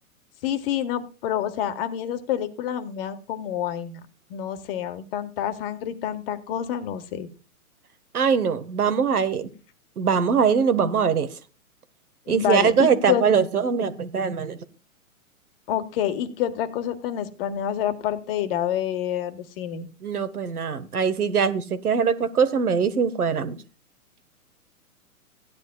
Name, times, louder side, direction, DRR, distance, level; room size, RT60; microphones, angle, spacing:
voice 1, 0.4-4.0 4.3-7.3 12.3-13.2 15.7-19.9, left 10 dB, 40° left, 9 dB, 1.5 m, -28 dB
voice 2, 8.1-9.5 10.0-11.3 12.3-14.6 20.0-23.6, right 6 dB, 85° right, 11 dB, 1.5 m, -22 dB
16.5 x 10.5 x 2.3 m, 0.33 s
hypercardioid pair, 135°, 44 cm